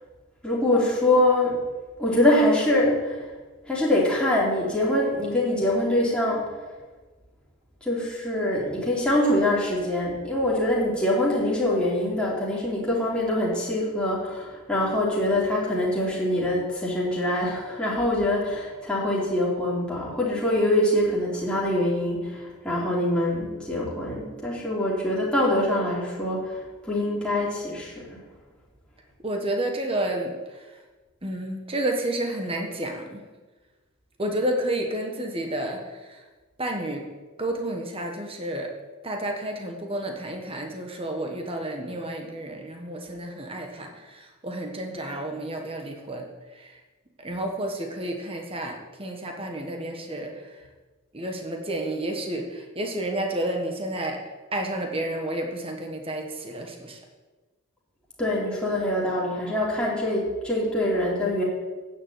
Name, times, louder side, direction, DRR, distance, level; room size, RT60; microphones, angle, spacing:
voice 1, 0.4-1.6 2.0-3.3 3.7-6.5 7.8-28.2 58.2-61.4, left 1 dB, 5° left, -6 dB, 3.2 m, -24 dB
voice 2, 29.2-30.3 31.2-33.2 34.2-36.2 36.6-37.1 37.4-38.7 39.0-46.3 46.5-46.7 47.2-50.3 51.1-54.2 54.5-57.0, right 1 dB, 25° right, 2 dB, 1.4 m, -30 dB
9.9 x 7.4 x 8.3 m, 1.3 s
head